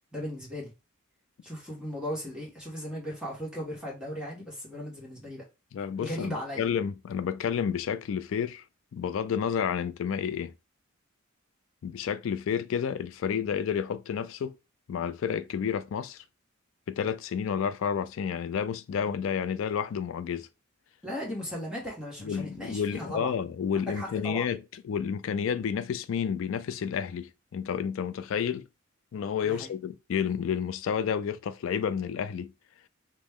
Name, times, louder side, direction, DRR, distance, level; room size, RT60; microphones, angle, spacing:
voice 1, 0.1-0.7 1.4-5.4 6.0-6.7 21.0-23.4 23.7-24.5 29.4-29.7, equal, 5° right, 1.2 m, -37 dB
voice 2, 5.7-8.6 8.9-10.5 11.8-14.5 14.9-16.2 16.9-20.5 22.2-24.6 24.8-28.7 29.1-32.5, left 7 dB, 65° left, 0.3 m, -30 dB
5.1 x 2.1 x 3.5 m
head